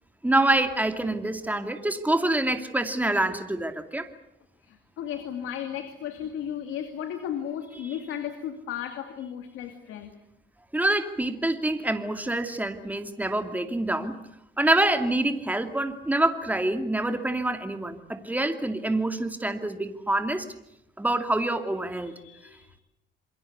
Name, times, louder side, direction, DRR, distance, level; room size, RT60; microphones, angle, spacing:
voice 1, 0.2-4.1 7.7-8.0 10.7-14.2 14.6-20.5 21.0-22.1, right 1 dB, 10° right, 7 dB, 2.5 m, -26 dB
voice 2, 4.7-10.1 22.1-22.7, left 9 dB, 90° left, 7 dB, 2.5 m, -35 dB
28.0 x 22.5 x 8.2 m, 0.82 s
cardioid pair, 90°, 20 cm